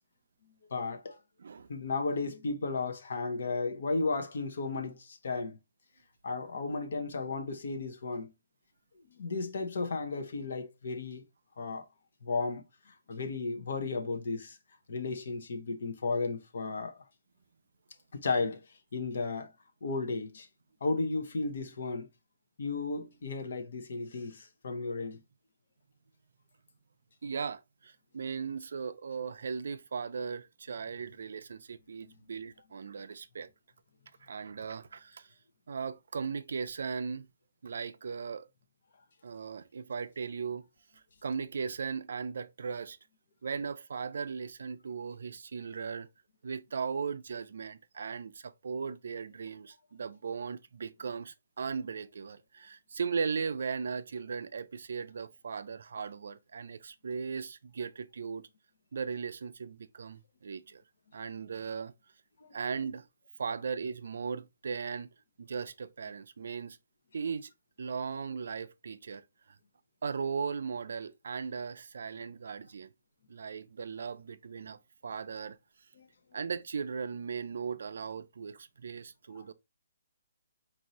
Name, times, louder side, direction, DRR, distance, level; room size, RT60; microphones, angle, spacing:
voice 1, 0.7-1.2 1.7-5.6 6.2-8.3 9.1-11.2 11.6-11.8 12.2-14.6 14.9-17.0 18.1-18.6 18.9-19.5 19.8-20.5 20.8-22.1 22.6-25.2 32.0-32.1 62.4-62.5 76.0-76.1 79.3-79.4, left 3 dB, 55° left, 0.9 m, -34 dB
voice 2, 27.2-33.5 34.2-35.3 35.7-37.3 37.6-38.5 39.2-40.7 41.2-43.0 43.4-46.1 46.4-58.5 58.9-60.8 61.1-61.9 62.5-63.1 63.4-65.1 65.4-66.8 67.1-67.5 67.8-69.2 70.0-72.9 73.3-75.6 76.3-79.5, right 5 dB, 60° right, 0.4 m, -37 dB
4.6 x 2.7 x 2.9 m
hypercardioid pair, 175°, 0 cm